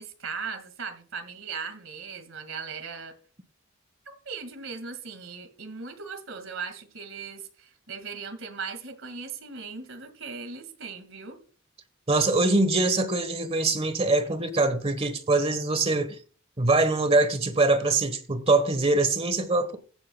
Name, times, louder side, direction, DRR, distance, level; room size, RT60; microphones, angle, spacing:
voice 1, 0.0-3.1 4.1-11.4, right 5 dB, 75° right, 2.0 m, -38 dB
voice 2, 12.1-16.2 16.6-19.8, right 2 dB, 30° right, 1.2 m, -23 dB
15.0 x 8.7 x 2.3 m
head